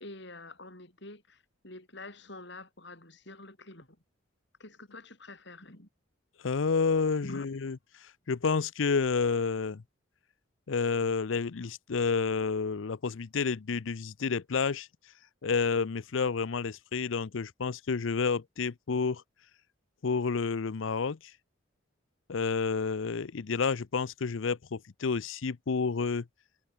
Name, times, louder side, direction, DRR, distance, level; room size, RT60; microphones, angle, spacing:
voice 1, 0.0-4.0 4.6-5.9 7.2-7.5, left 2 dB, 60° left, 7.4 m, -47 dB
voice 2, 6.4-7.8 8.3-9.8 10.7-14.9 15.4-19.2 20.0-21.2 22.3-26.2, left 5 dB, 75° left, 0.6 m, -29 dB
head